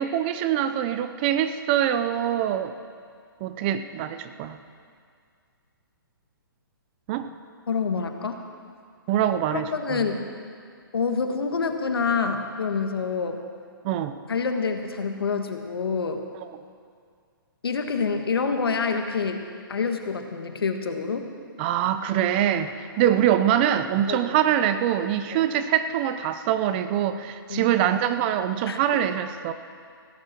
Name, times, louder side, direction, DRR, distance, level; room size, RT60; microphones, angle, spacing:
voice 1, 0.0-2.7 3.4-4.6 7.1-7.3 9.1-10.0 13.8-14.1 21.6-29.5, right 10 dB, 25° right, 11 dB, 0.5 m, -24 dB
voice 2, 7.7-8.4 9.5-10.2 10.9-13.4 14.3-16.2 17.6-19.4 19.7-21.3 24.1-24.3 25.3-25.5 27.5-27.7 28.7-29.0, left 5 dB, 85° left, 5 dB, 1.6 m, -27 dB
16.0 x 14.5 x 4.4 m, 2.2 s
hypercardioid pair, 155°, 12 cm